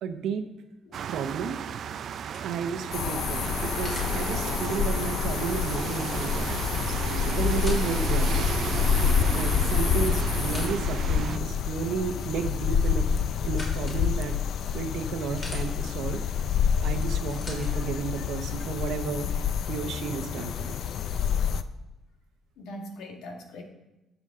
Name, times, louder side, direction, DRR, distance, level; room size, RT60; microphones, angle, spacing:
voice 1, 0.0-0.5 1.1-1.6 2.4-8.6 9.3-13.1 13.4-14.4 14.7-16.2 16.8-19.3 19.7-20.7, right 6 dB, 70° right, 8 dB, 0.9 m, -32 dB
voice 2, 0.9-1.2 16.9-17.1 17.7-17.8 18.2-18.3 22.6-23.6, left 1 dB, 85° left, 3 dB, 1.7 m, -43 dB
sound 1, 0.9-11.4, right 8 dB, 50° right, 0.4 m, -34 dB
sound 2, 2.1-4.2 6.2-6.3 6.6-6.7 7.2-8.0 8.6-8.7 9.4-11.0 12.7-14.0 14.7-15.6 16.9-17.7 18.6-18.7, left 1 dB, 30° left, 3.2 m, -44 dB
sound 3, 2.9-21.6, left 7 dB, 60° left, 0.4 m, -27 dB
13.0 x 7.2 x 3.7 m, 0.99 s
cardioid pair, 140°, 0 cm